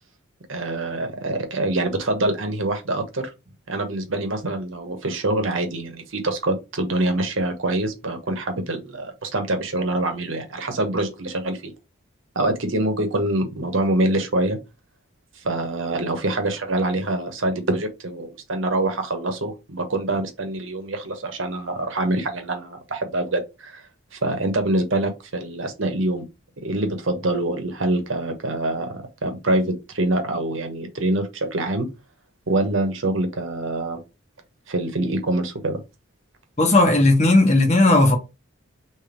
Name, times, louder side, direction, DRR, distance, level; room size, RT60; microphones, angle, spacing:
voice 1, 0.5-3.3 3.7-11.7 12.3-14.6 15.4-23.8 24.1-26.2 26.6-31.9 32.5-34.0 34.7-35.8, right 2 dB, 75° right, 1.1 m, -25 dB
voice 2, 36.6-38.2, left 2 dB, 35° left, 1.1 m, -15 dB
3.4 x 3.1 x 4.6 m
head